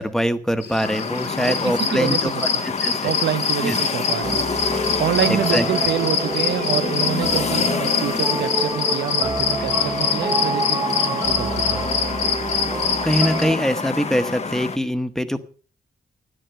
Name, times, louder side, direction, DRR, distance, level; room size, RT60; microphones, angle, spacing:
voice 1, 0.0-3.1 3.6-3.8 5.3-5.7 12.7-15.4, equal, 5° left, 1.0 m, -23 dB
sound 1, 0.6-13.4, left 6 dB, 75° left, 2.6 m, -25 dB
sound 2, 0.8-14.8, left 5 dB, 40° left, 0.8 m, -28 dB
voice 2, 1.4-2.6 3.0-4.7 5.0-11.9, right 11 dB, 85° right, 0.5 m, -27 dB
sound 3, 4.2-13.6, right 3 dB, 20° right, 0.9 m, -28 dB
12.5 x 10.5 x 5.4 m
wide cardioid pair, 130°, 18 cm